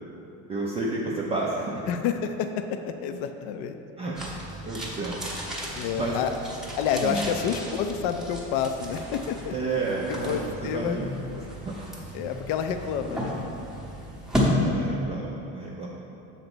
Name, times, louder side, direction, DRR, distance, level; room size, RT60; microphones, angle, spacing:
voice 1, 0.5-1.9 4.0-5.3 6.0-6.2 7.0-7.2 9.5-11.1 11.5-11.8 14.4-15.9, right 3 dB, 15° right, -4 dB, 0.3 m, -31 dB
voice 2, 1.9-3.8 4.3-4.4 5.7-6.3 6.8-9.8 10.1-11.0 12.1-13.4, left 7 dB, 60° left, 7 dB, 0.5 m, -29 dB
sound 1, 4.1-14.6, equal, ahead, 0.7 m, -34 dB
6.6 x 4.0 x 6.0 m, 2.9 s
cardioid pair, 155°, 38 cm